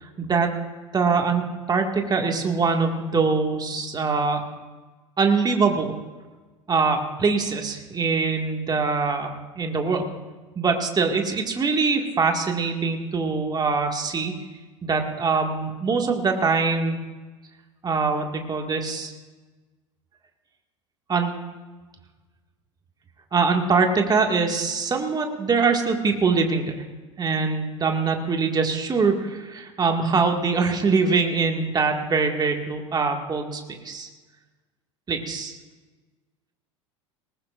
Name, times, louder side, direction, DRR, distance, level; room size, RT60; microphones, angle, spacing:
voice 1, 0.0-0.5 0.9-1.4 1.7-4.4 5.2-6.0 6.7-10.1 10.6-14.3 14.8-17.0 17.8-19.1 21.1-21.3 23.3-26.7 27.2-34.1 35.1-35.6, right 4 dB, 25° right, 3 dB, 2.1 m, -23 dB
20.0 x 19.0 x 2.6 m, 1.3 s
hypercardioid pair, 75°, 16 cm